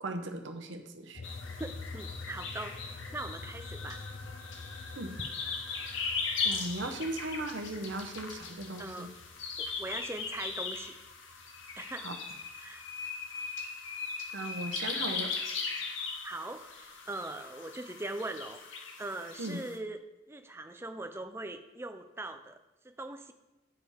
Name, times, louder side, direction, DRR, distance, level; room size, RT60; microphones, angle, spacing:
voice 1, 0.0-1.2 5.0-5.1 6.4-9.1 12.0-12.2 14.3-15.3 19.4-19.6, right 1 dB, 80° right, 5 dB, 1.0 m, -37 dB
sound 1, 1.1-12.0 12.4-13.9, left 3 dB, 45° left, 0.4 m, -47 dB
sound 2, 1.2-19.8, left 5 dB, 85° left, 1.0 m, -39 dB
voice 2, 1.6-4.0 8.8-9.1 9.6-10.9 11.8-12.1 12.6-12.9 16.2-20.0 20.3-22.6 22.8-23.3, right 2 dB, 15° right, 7 dB, 0.5 m, -41 dB
9.2 x 5.5 x 4.9 m, 1.0 s
head